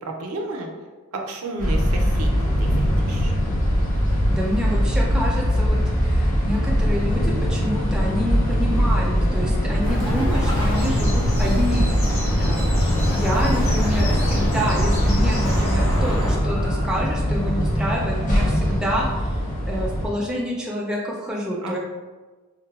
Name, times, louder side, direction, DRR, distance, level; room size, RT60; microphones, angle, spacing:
voice 1, 0.0-0.7 1.1-3.3 21.6-21.8, right 2 dB, 80° right, 2 dB, 0.5 m, -32 dB
sound 1, 1.6-20.1, equal, 35° left, 0.6 m, -22 dB
voice 2, 4.3-11.9 12.4-12.7 13.1-19.3 19.7-21.8, equal, 5° right, -3 dB, 0.3 m, -28 dB
Bird, 9.8-16.4, equal, 70° left, 0.9 m, -25 dB
sound 2, 10.7-16.0, left 1 dB, 85° left, 1.4 m, -36 dB
3.9 x 2.1 x 2.2 m, 1.3 s
head